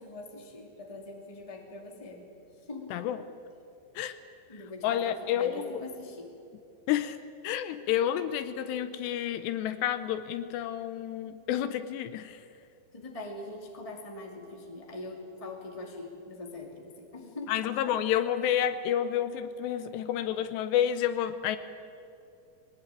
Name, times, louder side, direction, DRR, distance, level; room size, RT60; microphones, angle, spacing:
voice 1, 0.0-2.3 2.7-2.9 4.5-6.3 12.9-17.5, left 2 dB, 10° left, 1 dB, 1.7 m, -42 dB
voice 2, 2.9-3.2 4.0-4.2 4.8-5.8 6.9-7.2 7.4-12.4 17.5-21.6, left 10 dB, 80° left, 11 dB, 2.8 m, -30 dB
21.0 x 19.0 x 9.0 m, 2.5 s
omnidirectional pair, 5.1 m